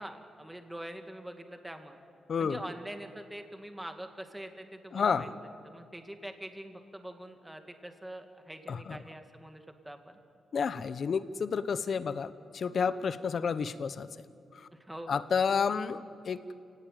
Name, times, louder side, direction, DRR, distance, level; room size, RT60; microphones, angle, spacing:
voice 1, 0.0-2.0 2.4-5.3 5.6-10.2 14.7-15.2, right 1 dB, 10° right, 6 dB, 2.2 m, -44 dB
voice 2, 4.9-5.3 8.7-9.0 10.5-14.1 15.1-16.4, left 6 dB, 55° left, 13 dB, 1.0 m, -30 dB
29.5 x 18.0 x 9.2 m, 2.6 s
cardioid pair, 110°, 0 cm